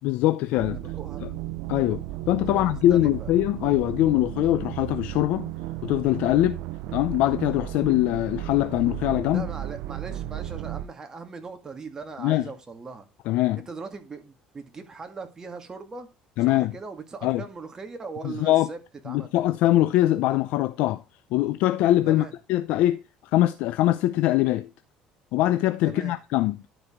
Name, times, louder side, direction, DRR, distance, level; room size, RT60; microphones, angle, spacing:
voice 1, 0.0-0.8 1.2-1.3 1.7-5.5 5.8-6.6 6.9-9.5 12.2-12.5 13.3-13.6 16.4-16.7 17.2-17.4 18.2-18.7 19.1-21.0 21.3-23.0 23.3-24.7 25.3-26.6, left 15 dB, 75° left, 0.6 m, -22 dB
voice 2, 0.5-1.2 2.5-3.3 9.3-13.1 13.7-16.1 16.4-18.8 19.0-19.3 22.1-22.3 25.8-26.1, right 4 dB, 25° right, 1.9 m, -39 dB
sound 1, 0.6-10.9, right 15 dB, 80° right, 0.6 m, -34 dB
12.0 x 4.9 x 3.7 m
cardioid pair, 115°, 3 cm